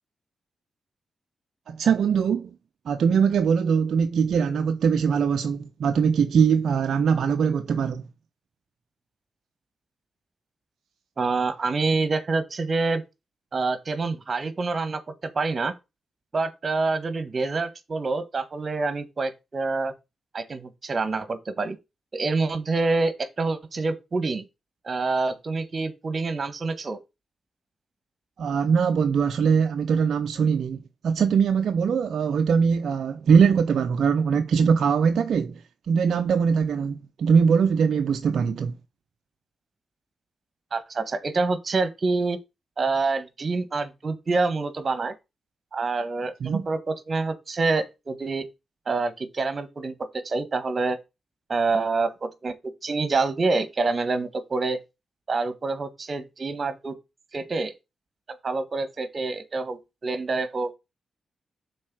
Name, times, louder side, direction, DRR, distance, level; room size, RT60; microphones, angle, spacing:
voice 1, 1.7-2.5 2.9-8.0 28.4-38.7 46.4-46.6, right 6 dB, 75° right, 0.6 m, -22 dB
voice 2, 11.2-13.0 13.5-15.7 16.3-19.9 20.3-21.8 22.1-24.4 24.8-27.0 40.7-42.4 42.8-45.1 45.7-48.4 48.9-49.9 50.2-51.0 51.5-52.5 52.8-54.8 55.3-56.9 57.3-57.7 58.4-60.8, right 3 dB, 50° right, 1.5 m, -26 dB
6.3 x 4.3 x 6.2 m
supercardioid pair, 40°, 0 cm